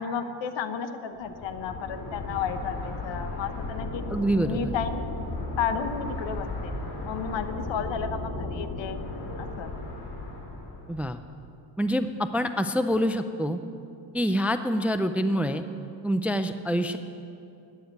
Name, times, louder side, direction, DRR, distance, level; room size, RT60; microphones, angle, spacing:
voice 1, 0.0-4.0 4.4-5.1 5.6-6.7 7.0-9.0 9.4-9.7, left 6 dB, 75° left, 9 dB, 1.1 m, -32 dB
sound 1, 1.2-11.0, left 2 dB, 45° left, 2.7 m, -35 dB
voice 2, 4.1-4.7 10.9-11.2 11.8-13.6 14.1-15.6 16.0-17.0, equal, 5° right, 10 dB, 0.3 m, -26 dB
12.5 x 9.5 x 9.3 m, 2.6 s
cardioid pair, 135°, 45 cm